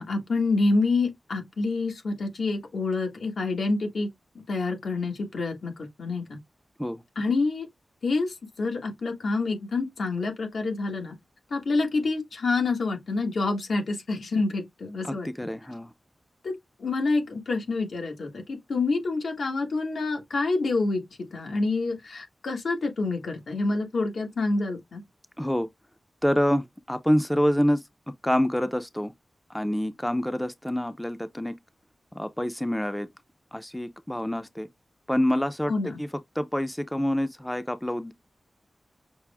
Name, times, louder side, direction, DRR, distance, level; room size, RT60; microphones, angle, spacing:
voice 1, 0.0-4.1 4.5-6.4 7.1-7.7 8.0-11.1 11.5-15.3 16.4-21.0 21.3-25.0 35.7-36.0, left 3 dB, 85° left, 1.3 m, -27 dB
voice 2, 15.0-15.9 25.4-25.7 26.2-27.8 28.2-29.1 29.5-31.5 32.1-33.1 33.5-34.7 35.1-35.7 36.0-36.1 36.4-38.1, equal, 10° left, 0.5 m, -26 dB
6.0 x 2.0 x 3.4 m
wide cardioid pair, 75°, 0 cm